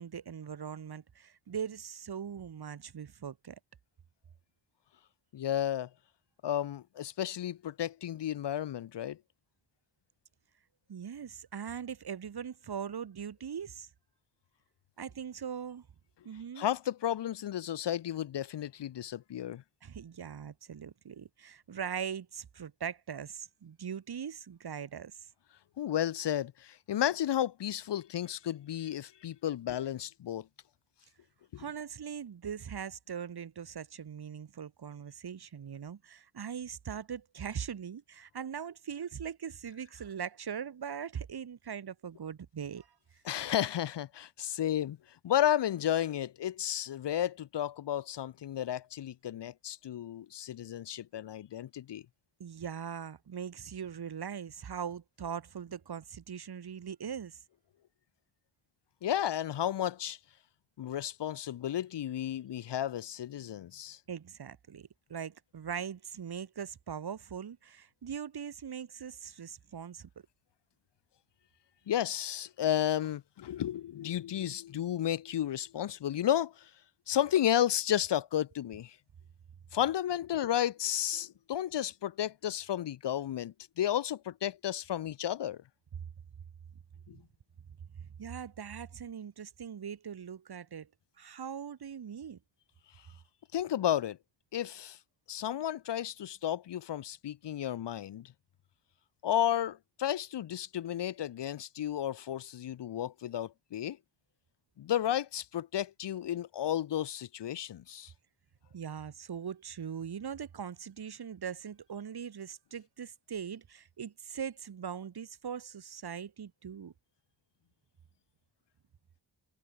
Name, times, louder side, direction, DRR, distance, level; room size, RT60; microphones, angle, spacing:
voice 1, 0.0-3.6 10.9-13.9 15.0-15.9 16.2-16.7 19.8-25.2 31.6-42.9 52.4-57.4 64.1-70.1 87.9-90.9 91.2-92.4 108.7-116.9, right 7 dB, 50° right, 2.2 m, -41 dB
voice 2, 5.3-5.9 6.4-9.2 16.6-19.6 25.8-30.5 31.5-31.6 43.2-45.0 45.2-52.0 59.0-60.2 60.8-64.0 71.9-76.7 77.1-78.9 79.7-85.6 87.1-87.2 93.5-94.2 94.5-95.0 95.3-98.3 99.2-104.0 104.8-108.1, left 11 dB, 60° left, 0.8 m, -32 dB
wide cardioid pair, 120°, 48 cm